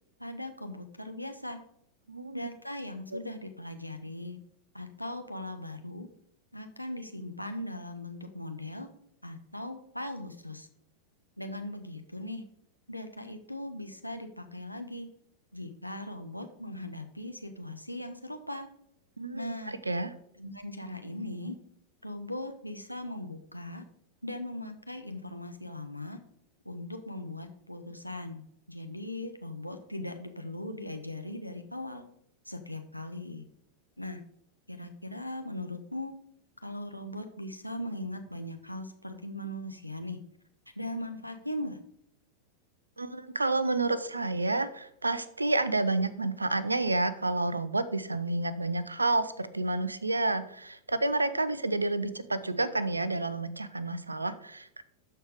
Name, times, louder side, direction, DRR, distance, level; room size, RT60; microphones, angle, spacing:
voice 1, 0.2-1.6 2.3-4.4 4.7-6.1 6.5-8.9 9.2-10.7 11.4-12.4 12.9-15.1 15.5-18.7 19.3-19.8 20.4-21.6 22.0-23.8 24.2-26.2 26.6-28.4 28.7-32.0 32.5-33.4 34.0-34.2 34.7-36.1 36.6-40.2 40.7-41.8, left 1 dB, 90° left, 6 dB, 0.9 m, -39 dB
voice 2, 2.1-2.4 19.2-20.1 43.0-54.8, right 2 dB, 80° right, 15 dB, 0.6 m, -30 dB
12.5 x 4.6 x 5.0 m, 0.70 s
figure-of-eight pair, 90°, 0 cm